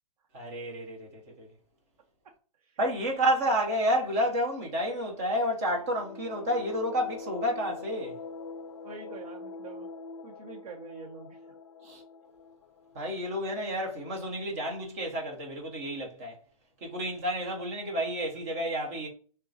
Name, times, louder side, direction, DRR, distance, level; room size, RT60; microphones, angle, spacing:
voice 1, 0.3-1.5 2.8-8.1 11.8-12.0 12.9-16.4 16.8-19.1, equal, 25° right, 1.1 m, -30 dB
sound 1, 5.5-14.1, left 4 dB, 50° left, 0.5 m, -44 dB
voice 2, 8.8-9.9 10.2-11.6, right 5 dB, 80° right, 1.0 m, -46 dB
6.3 x 2.3 x 2.7 m
hypercardioid pair, 170°, 19 cm